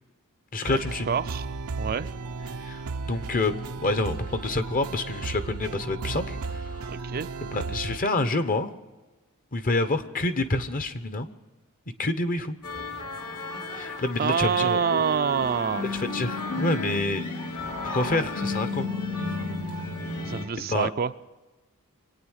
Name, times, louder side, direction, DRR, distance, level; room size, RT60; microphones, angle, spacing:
voice 1, 0.5-1.1 2.6-3.5 3.8-6.9 7.4-8.7 9.5-11.3 12.0-12.5 13.8-14.8 15.9-17.2 17.8-18.9 20.6-20.9, left 2 dB, 40° left, 10 dB, 1.0 m, -27 dB
sound 1, 0.6-8.0, right 4 dB, 85° right, 0.7 m, -35 dB
voice 2, 1.1-1.5 1.8-2.1 6.9-7.3 14.2-15.9 20.2-21.1, right 7 dB, 40° right, 11 dB, 0.4 m, -26 dB
sound 2, 12.6-20.4, left 2 dB, 85° left, 3.1 m, -32 dB
24.0 x 9.3 x 6.4 m, 1.2 s
head